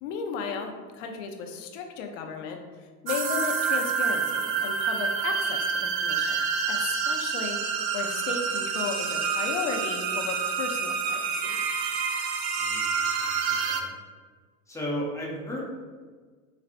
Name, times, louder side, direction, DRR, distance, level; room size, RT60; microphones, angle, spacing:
voice 1, 0.0-2.6 3.0-6.4 6.7-7.6 7.9-11.6, left 5 dB, 60° left, 4 dB, 0.7 m, -34 dB
sound 1, 3.1-13.8, right 5 dB, 50° right, 0.5 m, -28 dB
voice 2, 12.6-13.9 14.7-15.6, equal, 5° left, -4 dB, 0.6 m, -35 dB
4.4 x 3.2 x 2.5 m, 1.5 s
supercardioid pair, 135°, 44 cm